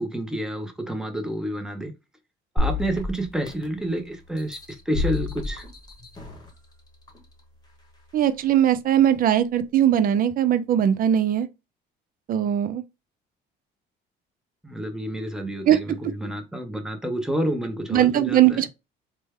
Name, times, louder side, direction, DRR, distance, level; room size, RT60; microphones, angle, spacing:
voice 1, 0.0-1.9 2.5-5.7 14.6-18.6, right 1 dB, 5° right, 0.7 m, -29 dB
sound 1, 2.6-3.9 4.4-6.5 7.1-7.2, left 3 dB, 20° left, 1.0 m, -29 dB
voice 2, 8.1-11.5 12.3-12.8 15.7-15.8 17.9-18.7, right 10 dB, 45° right, 0.4 m, -20 dB
3.2 x 2.2 x 3.2 m
cardioid pair, 105°, 20 cm